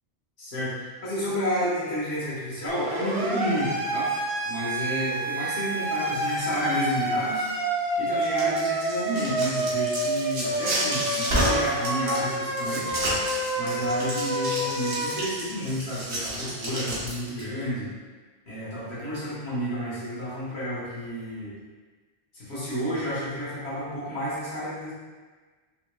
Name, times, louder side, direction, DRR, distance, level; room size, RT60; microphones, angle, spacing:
voice 1, 0.4-7.4 8.0-12.9 13.6-17.9 18.5-21.5 22.3-24.9, equal, 70° left, -8 dB, 1.5 m, -31 dB
Siren, 2.7-15.1, right 1 dB, 65° right, 1.6 m, -28 dB
sound 1, 8.1-17.4, right 1 dB, 85° right, 1.3 m, -31 dB
4.2 x 3.0 x 2.2 m, 1.4 s
omnidirectional pair, 1.1 m